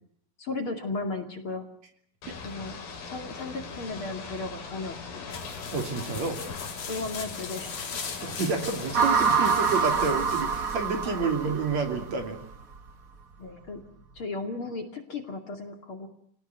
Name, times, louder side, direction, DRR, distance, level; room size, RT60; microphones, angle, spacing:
voice 1, 0.4-1.7 2.4-2.7 3.0-5.4 6.9-7.7 11.0-11.3 13.4-13.8 14.1-16.1, left 3 dB, 40° left, 5 dB, 3.0 m, -35 dB
Ocean / Boat Water vehicle, 2.2-10.1, left 4 dB, 85° left, 5.5 m, -40 dB
sound 1, 5.3-10.9, left 6 dB, 55° left, 4.1 m, -40 dB
voice 2, 5.7-6.4 8.2-12.4, right 4 dB, 50° right, 5 dB, 4.0 m, -29 dB
sound 2, 8.9-12.2, right 6 dB, 80° right, 0.7 m, -26 dB
30.0 x 19.0 x 8.2 m, 0.67 s
omnidirectional pair, 4.0 m